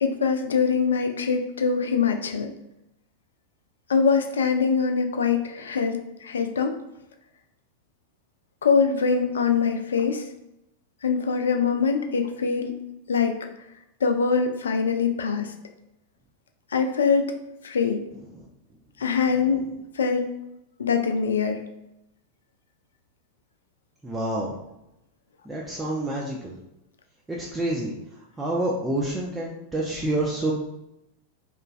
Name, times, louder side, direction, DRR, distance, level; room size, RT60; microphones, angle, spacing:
voice 1, 0.0-2.5 3.9-6.8 8.6-10.2 11.0-12.7 13.1-13.4 14.0-15.5 16.7-17.3 17.6-18.0 19.0-19.7 20.0-20.3 20.8-21.7, left 5 dB, 65° left, 6 dB, 0.3 m, -23 dB
voice 2, 24.0-24.6 25.4-26.6 27.3-27.9 28.4-30.5, right 1 dB, 10° right, -3 dB, 0.4 m, -28 dB
2.9 x 2.3 x 2.4 m, 0.87 s
figure-of-eight pair, 90°, 0 cm